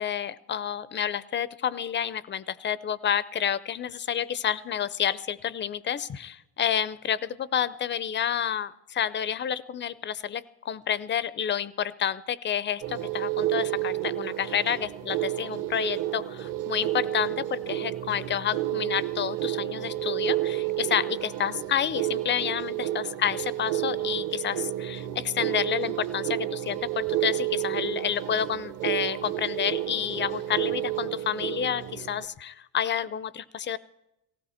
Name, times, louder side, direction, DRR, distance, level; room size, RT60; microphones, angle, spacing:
voice 1, 0.0-33.8, left 9 dB, 25° left, 19 dB, 0.4 m, -29 dB
sound 1, 12.8-32.2, right 14 dB, 40° right, 0.8 m, -31 dB
18.0 x 16.0 x 4.3 m, 0.87 s
supercardioid pair, 105°, 50 cm